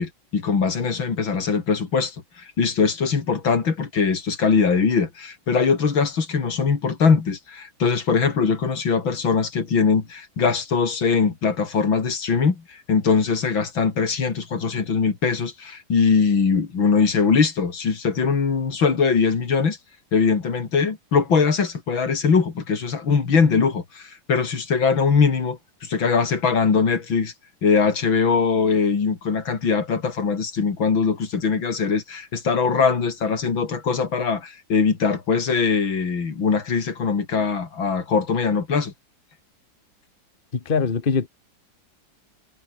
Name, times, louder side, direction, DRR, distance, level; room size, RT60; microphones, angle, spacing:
voice 1, 0.0-19.8 20.1-27.3 27.6-38.9, left 5 dB, 85° left, 3.6 m, -21 dB
voice 2, 40.6-41.3, left 5 dB, 30° left, 1.5 m, -22 dB
omnidirectional pair, 2.1 m